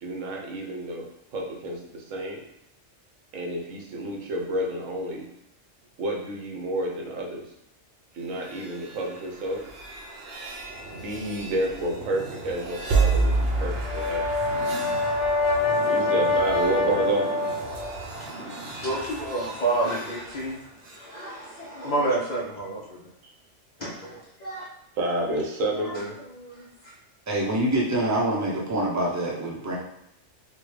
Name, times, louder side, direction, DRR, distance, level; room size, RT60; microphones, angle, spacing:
voice 1, 0.0-1.1 1.3-2.4 3.3-5.3 6.0-7.4 8.1-9.6 10.9-14.2 15.8-17.6 23.2-23.3 25.0-25.9, right 1 dB, 90° right, -1 dB, 1.2 m, -30 dB
sound 1, 8.2-21.1, right 3 dB, 60° right, 0.8 m, -31 dB
Brass instrument, 13.7-18.0, left 2 dB, 90° left, 1.0 m, -25 dB
voice 2, 18.8-23.1 23.8-24.6 25.8-26.9, right 2 dB, 60° left, -4 dB, 0.4 m, -30 dB
voice 3, 27.3-29.8, right 1 dB, 20° right, -4 dB, 0.5 m, -25 dB
4.4 x 2.2 x 3.2 m, 0.78 s
omnidirectional pair, 1.3 m